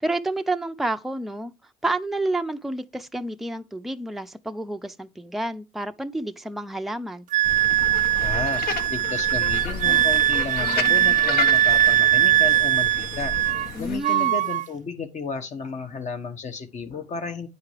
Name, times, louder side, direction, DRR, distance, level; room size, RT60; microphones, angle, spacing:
voice 1, 0.0-1.5 1.8-7.3 13.7-14.4, right 2 dB, ahead, 0.6 m, -29 dB
Wind instrument woodwind instrument, 7.3-13.7 14.0-14.7, right 12 dB, 50° right, 0.4 m, -21 dB
sound 1, 7.4-14.0, left 5 dB, 65° left, 1.5 m, -32 dB
voice 2, 8.2-8.6 8.9-13.3 13.8-17.5, left 4 dB, 45° left, 1.3 m, -33 dB
9.6 x 4.8 x 4.8 m
cardioid pair, 110°, 17 cm